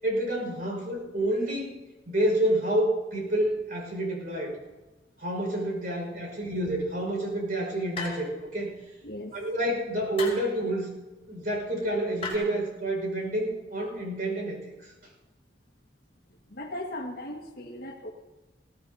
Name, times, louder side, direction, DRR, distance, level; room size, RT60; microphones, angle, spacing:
voice 1, 0.0-1.8 2.1-4.6 5.2-8.7 9.3-10.9 11.3-14.9, right 1 dB, 50° right, 0 dB, 5.1 m, -28 dB
sound 1, 8.0-8.5 10.2-10.5 12.2-12.3, left 4 dB, 35° left, 4.4 m, -36 dB
voice 2, 9.0-9.4 16.4-18.1, left 1 dB, 55° left, 2 dB, 1.6 m, -38 dB
21.0 x 17.0 x 2.7 m, 1.1 s
head